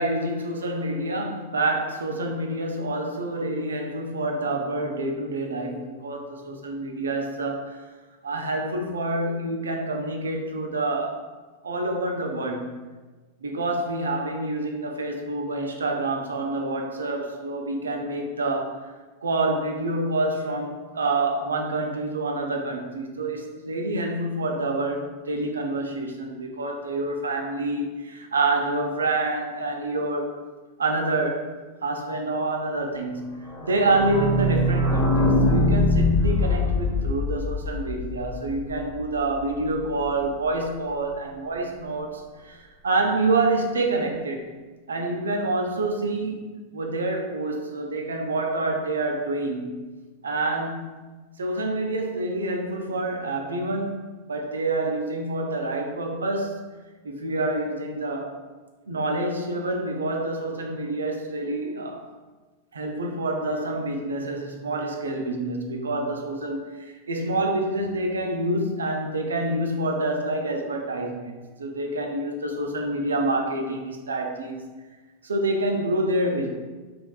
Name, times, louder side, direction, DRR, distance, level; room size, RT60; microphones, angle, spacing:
voice 1, 0.0-7.8 8.2-11.2 11.6-12.8 13.4-18.8 19.2-30.3 30.8-31.5 31.8-44.4 44.9-46.4 46.7-49.9 50.2-51.1 51.4-56.6 57.0-58.4 58.9-62.1 62.7-74.7 75.2-76.5, right 2 dB, 70° right, 3 dB, 0.4 m, -27 dB
sound 1, 33.5-39.0 39.3-39.4 39.6-39.7 40.0-40.1, left 1 dB, 35° left, 0.9 m, -23 dB
3.2 x 3.1 x 2.3 m, 1.3 s
figure-of-eight pair, 90°, 0 cm